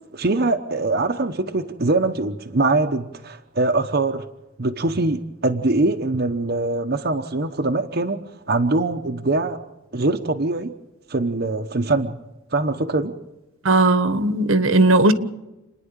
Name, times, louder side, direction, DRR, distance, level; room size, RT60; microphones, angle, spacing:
voice 1, 0.1-4.3 4.6-9.6 9.9-10.7 11.1-12.2 12.5-13.2, right 2 dB, 50° right, 1.0 m, -23 dB
voice 2, 13.6-15.1, right 2 dB, 80° right, 1.4 m, -17 dB
29.5 x 10.5 x 8.9 m
head